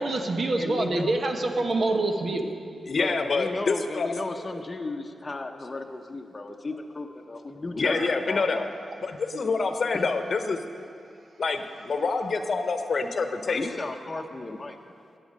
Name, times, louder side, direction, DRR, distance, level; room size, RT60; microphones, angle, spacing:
voice 1, 0.0-2.5 7.9-8.2, right 2 dB, 55° right, 4 dB, 1.2 m, -26 dB
voice 2, 0.6-1.2 2.9-8.0 8.3-8.7 9.9-10.1 13.4-14.8, left 2 dB, 30° left, 3 dB, 0.8 m, -34 dB
voice 3, 2.9-4.1 7.7-8.6 9.0-10.6 11.4-13.7, left 4 dB, 55° left, 7 dB, 0.9 m, -26 dB
16.0 x 9.1 x 5.3 m, 2.5 s
cardioid pair, 85°, 0 cm